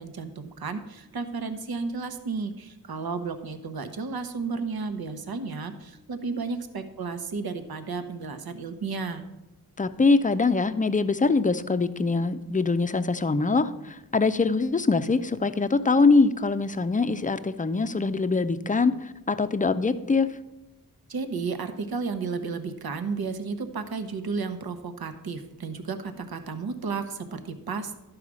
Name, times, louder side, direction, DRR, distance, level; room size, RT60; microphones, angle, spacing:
voice 1, 0.0-9.2 21.1-28.0, right 4 dB, 75° right, 8 dB, 1.0 m, -33 dB
voice 2, 9.8-13.7 14.1-18.9 19.3-20.3, left 3 dB, 20° left, 12 dB, 0.5 m, -23 dB
12.0 x 4.8 x 6.2 m, 0.97 s
wide cardioid pair, 110°, 37 cm